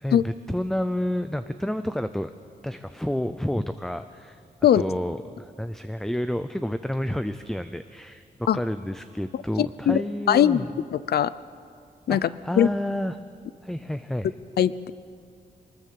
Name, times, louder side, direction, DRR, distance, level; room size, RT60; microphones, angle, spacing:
voice 1, 0.0-2.3 2.6-4.4 4.7-10.7 12.1-13.2 13.6-14.3, equal, 5° left, 10 dB, 0.5 m, -30 dB
voice 2, 9.6-10.0 10.3-10.6 10.9-11.3 12.1-12.3 12.6-12.7 14.6-14.9, left 10 dB, 90° left, 17 dB, 0.6 m, -20 dB
23.5 x 20.0 x 7.7 m, 2.3 s
wide cardioid pair, 165°, 16 cm